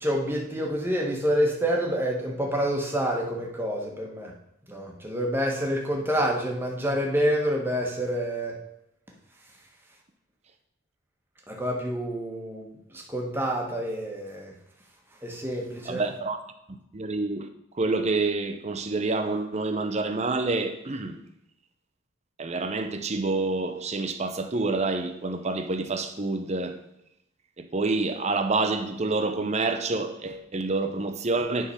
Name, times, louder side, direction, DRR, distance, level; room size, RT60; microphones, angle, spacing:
voice 1, 0.0-4.3 4.7-8.6 11.5-14.5 15.2-16.0, equal, 10° right, 1.3 m, -28 dB
voice 2, 15.9-16.4 16.7-17.5 17.8-21.2 22.4-26.8 27.6-31.7, right 3 dB, 30° right, 0.7 m, -28 dB
9.9 x 3.9 x 5.5 m
head